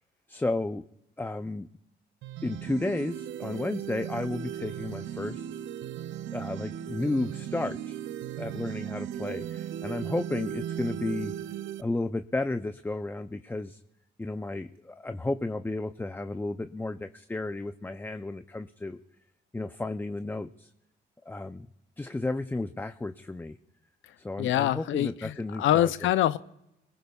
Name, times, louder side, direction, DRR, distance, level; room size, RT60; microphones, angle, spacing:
voice 1, 0.3-0.9 1.2-1.7 2.4-5.5 6.3-8.0 8.4-11.3 11.8-13.8 14.2-19.0 19.5-20.7 21.3-21.7 22.0-23.6 24.2-25.9, left 2 dB, 10° left, 9 dB, 0.5 m, -33 dB
sound 1, 2.2-11.8, right 10 dB, 75° right, 0.6 m, -37 dB
voice 2, 24.4-26.4, left 12 dB, 75° left, 13 dB, 0.5 m, -25 dB
24.0 x 20.5 x 2.4 m, 0.84 s
cardioid pair, 90°, 20 cm